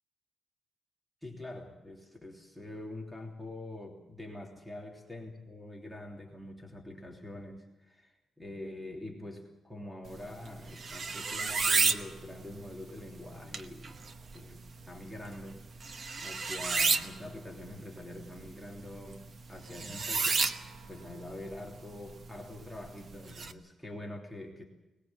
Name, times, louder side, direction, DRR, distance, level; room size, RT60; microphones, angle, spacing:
voice 1, 1.2-15.6 16.2-24.6, left 1 dB, 5° right, 1 dB, 3.2 m, -45 dB
sound 1, 10.1-23.5, right 4 dB, 40° right, 1.1 m, -34 dB
20.5 x 20.5 x 7.6 m, 0.99 s
cardioid pair, 135°, 0 cm